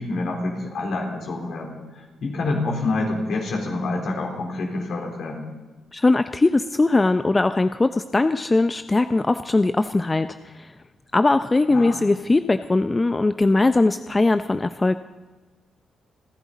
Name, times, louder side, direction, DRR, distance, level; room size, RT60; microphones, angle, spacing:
voice 1, 0.0-5.5 11.7-12.0, left 2 dB, 70° left, 0 dB, 3.8 m, -27 dB
voice 2, 5.9-10.7 11.1-15.0, left 2 dB, 25° left, 10 dB, 0.5 m, -20 dB
29.5 x 11.0 x 4.1 m, 1.2 s
supercardioid pair, 55°, 0 cm